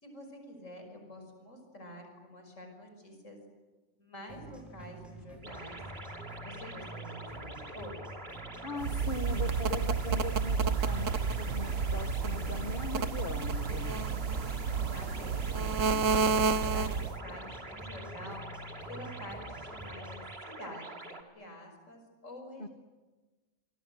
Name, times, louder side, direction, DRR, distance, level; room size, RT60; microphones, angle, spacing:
voice 1, 0.0-3.4 4.0-5.8 6.4-8.1 14.9-22.7, left 1 dB, 80° left, 4 dB, 6.3 m, -48 dB
sound 1, 4.3-20.3, right 1 dB, ahead, 6.7 m, -48 dB
sound 2, 5.4-21.2, right 2 dB, 50° right, 3.0 m, -45 dB
voice 2, 8.6-14.2 22.6-22.7, left 2 dB, 45° left, 7 dB, 1.5 m, -40 dB
sound 3, 8.8-17.2, right 5 dB, 90° right, 1.5 m, -30 dB
28.0 x 25.5 x 8.1 m, 1.2 s
omnidirectional pair, 1.3 m